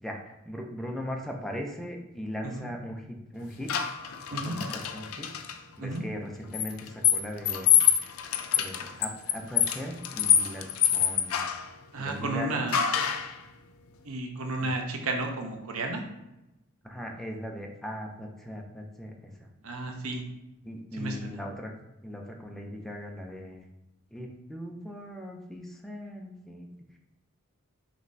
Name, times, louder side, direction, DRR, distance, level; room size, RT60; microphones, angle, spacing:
voice 1, 0.0-3.7 4.3-5.3 5.8-7.7 8.0-8.1 8.5-11.5 12.0-12.7 14.6-14.7 16.8-19.5 20.6-21.7 22.0-23.6 24.1-26.7, equal, ahead, 1 dB, 0.5 m, -39 dB
sound 1, 3.7-5.6 6.5-11.7 12.7-13.3, left 9 dB, 80° left, 0.4 m, -26 dB
voice 2, 11.9-12.9 14.0-16.0 19.6-20.2 20.9-21.4, right 2 dB, 80° right, 3 dB, 0.7 m, -32 dB
5.3 x 3.0 x 2.6 m, 0.94 s
head